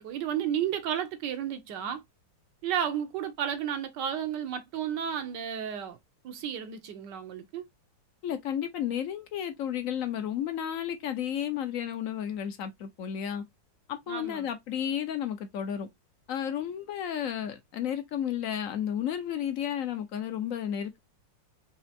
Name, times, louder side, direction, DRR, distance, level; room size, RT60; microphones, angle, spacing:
voice 1, 0.0-2.0 2.6-6.0 6.2-7.6 14.1-14.5, right 9 dB, 70° right, 1.4 m, -32 dB
voice 2, 8.2-13.4 13.9-15.9 16.3-21.0, left 9 dB, 60° left, 1.0 m, -32 dB
4.3 x 3.0 x 2.8 m
omnidirectional pair, 2.0 m